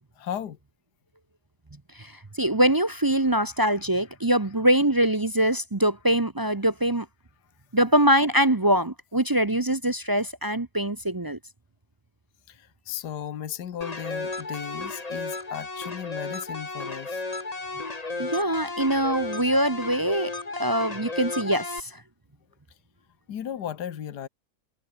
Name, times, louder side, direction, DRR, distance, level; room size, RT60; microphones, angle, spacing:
voice 1, 0.2-0.6 12.5-17.2 23.3-24.3, left 9 dB, 75° left, 1.8 m, -35 dB
voice 2, 1.9-7.1 7.7-11.4 18.2-22.0, right 1 dB, 25° right, 0.5 m, -23 dB
sound 1, 13.8-21.8, left 3 dB, 25° left, 1.7 m, -34 dB
omnidirectional pair, 1.8 m